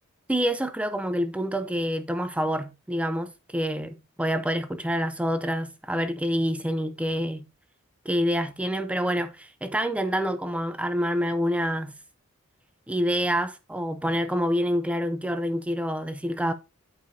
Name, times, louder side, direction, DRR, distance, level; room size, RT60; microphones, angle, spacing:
voice 1, 0.3-7.5 8.0-11.9 12.9-16.5, equal, 5° right, 0.5 m, -27 dB
11.5 x 4.9 x 2.8 m
head